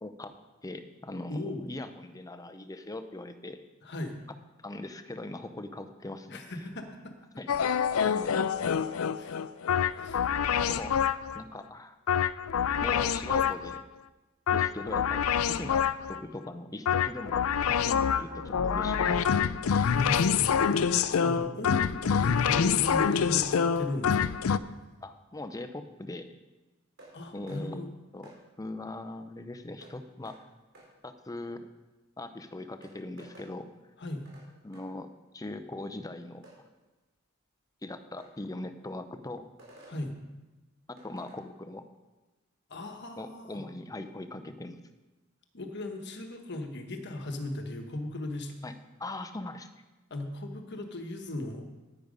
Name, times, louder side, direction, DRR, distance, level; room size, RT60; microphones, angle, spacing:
voice 1, 0.0-0.3 0.6-3.6 4.6-6.4 7.4-7.5 8.0-8.8 10.6-11.1 11.3-12.0 12.8-13.8 14.5-19.7 21.0-21.1 25.0-26.3 27.3-27.8 28.1-30.4 31.0-31.7 32.2-33.7 34.6-36.4 37.8-39.5 40.9-41.8 43.2-44.8 48.6-49.7, left 2 dB, 15° left, 10 dB, 0.7 m, -40 dB
voice 2, 1.3-1.7 3.8-4.2 6.3-7.1 9.2-9.4 9.9-10.3 19.8-23.5 23.7-24.5 27.1-28.0 34.0-34.3 39.9-40.2 42.7-43.6 45.5-48.5 50.1-51.7, left 1 dB, 55° left, 5 dB, 1.3 m, -37 dB
sound 1, 7.5-11.4 12.1-13.8 14.5-16.2 16.9-24.6, left 7 dB, 80° left, 0.4 m, -26 dB
sound 2, 27.0-27.1 27.5-27.6 28.2-28.4 29.8-29.9 30.2-30.4 30.7-30.9 32.3-32.4 32.8-33.5 34.2-34.5 34.7-34.9 36.4-36.6 38.2-38.3 39.6-40.0 41.0-41.4, right 1 dB, 60° right, 4.3 m, -53 dB
10.0 x 9.6 x 5.3 m, 1.1 s
head